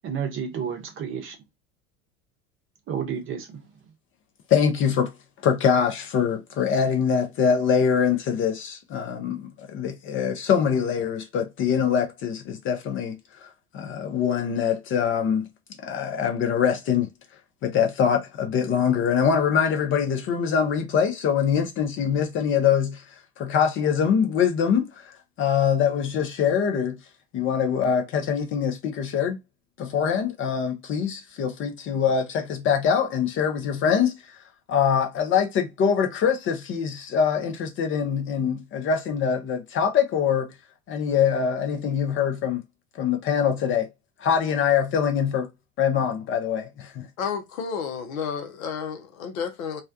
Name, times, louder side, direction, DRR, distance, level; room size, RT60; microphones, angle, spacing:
voice 1, 0.0-1.4 2.9-3.6, right 7 dB, 30° right, 0.7 m, -31 dB
voice 2, 4.5-5.1 5.4-13.5 13.7-15.5 15.8-17.1 17.6-23.0 23.4-27.0 27.3-29.4 29.8-34.4 34.7-40.5 40.9-42.6 43.0-43.9 44.2-45.5 45.8-47.1, left 7 dB, 30° left, 0.5 m, -24 dB
voice 3, 47.2-49.8, left 6 dB, 75° left, 0.7 m, -31 dB
2.4 x 2.2 x 2.4 m
figure-of-eight pair, 75°, 42 cm